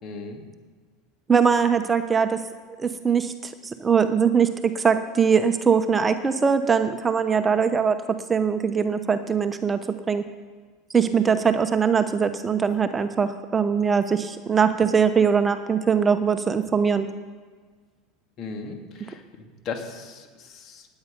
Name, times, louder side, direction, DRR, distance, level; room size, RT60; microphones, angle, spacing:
voice 1, 0.0-0.4 18.4-19.2 19.6-20.9, left 4 dB, 45° left, 4 dB, 2.4 m, -36 dB
voice 2, 1.3-2.4 2.8-8.0 8.3-10.3 10.9-17.1, right 6 dB, 20° right, 9 dB, 0.9 m, -21 dB
18.0 x 9.1 x 5.3 m, 1.5 s
hypercardioid pair, 90°, 0 cm